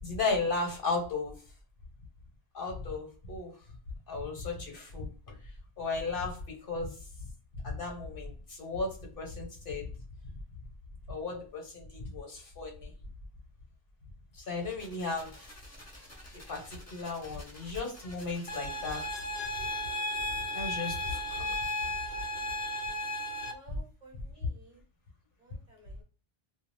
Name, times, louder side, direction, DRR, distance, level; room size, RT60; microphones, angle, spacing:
voice 1, 0.0-1.3 2.5-3.5 4.1-5.1 5.8-6.4 6.7-7.0 7.6-9.9 11.1-12.9 14.3-15.5 16.5-19.0 20.5-21.6, left 3 dB, 60° left, 1 dB, 1.2 m, -35 dB
sound 1, 14.5-19.5, left 1 dB, 20° left, 0.6 m, -52 dB
sound 2, 18.5-23.5, left 1 dB, 75° left, 0.8 m, -34 dB
voice 2, 23.5-24.8 25.4-26.0, right 2 dB, 50° right, 1 dB, 1.0 m, -56 dB
2.4 x 2.4 x 3.2 m, 0.40 s
omnidirectional pair, 1.1 m